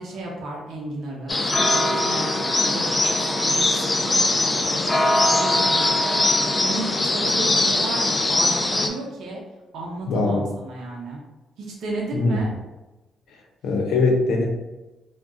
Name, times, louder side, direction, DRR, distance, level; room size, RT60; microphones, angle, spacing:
voice 1, 0.0-2.3 2.6-4.3 4.6-9.4 9.7-11.2 11.6-12.5, right 2 dB, 75° right, -2 dB, 0.6 m, -33 dB
sound 1, 1.3-8.9, left 2 dB, 25° left, 0.4 m, -21 dB
voice 2, 10.1-10.4 12.1-12.4 13.6-14.5, left 3 dB, 80° left, 1 dB, 0.6 m, -21 dB
2.3 x 2.2 x 3.7 m, 1.1 s
cardioid pair, 90°, 0 cm